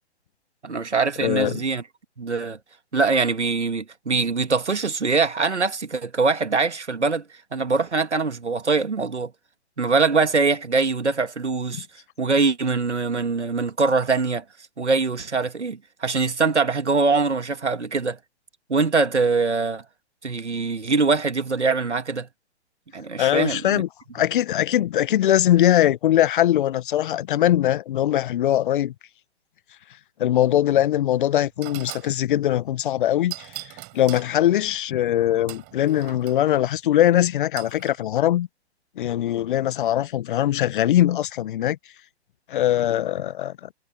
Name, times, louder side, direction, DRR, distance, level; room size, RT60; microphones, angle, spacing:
voice 1, 0.6-1.8 2.2-2.6 2.9-7.2 7.5-9.3 9.8-11.9 12.2-14.4 14.8-18.2 18.7-19.8 20.2-22.3 22.9-23.8, right 4 dB, 85° right, 2.4 m, -23 dB
voice 2, 1.2-1.6 23.2-23.9 24.1-28.9 30.2-33.5 33.9-38.5 39.0-41.8 42.5-43.6, left 12 dB, 50° left, 1.2 m, -21 dB
sound 1, 30.9-31.0 31.6-32.2 33.3-34.3 35.5-36.4 37.6-38.0, right 24 dB, 30° right, 6.2 m, -39 dB
figure-of-eight pair, 125°, 34 cm